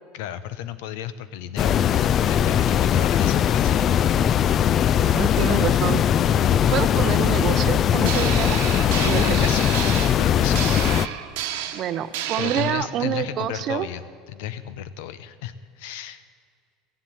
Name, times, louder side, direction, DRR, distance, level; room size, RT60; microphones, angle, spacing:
voice 1, 0.1-3.9 8.9-9.7 10.2-10.6 12.4-14.0 14.3-16.2, left 11 dB, 80° left, 14 dB, 0.8 m, -33 dB
sound 1, 1.6-11.1, left 9 dB, 35° left, 0.3 m, -20 dB
voice 2, 5.0-6.0 6.7-8.6 9.0-9.5 11.7-13.9, right 10 dB, 45° right, 13 dB, 0.6 m, -27 dB
sound 2, 8.0-12.7, right 11 dB, 80° right, 1.2 m, -30 dB
15.5 x 7.5 x 9.3 m, 2.1 s
supercardioid pair, 135°, 0 cm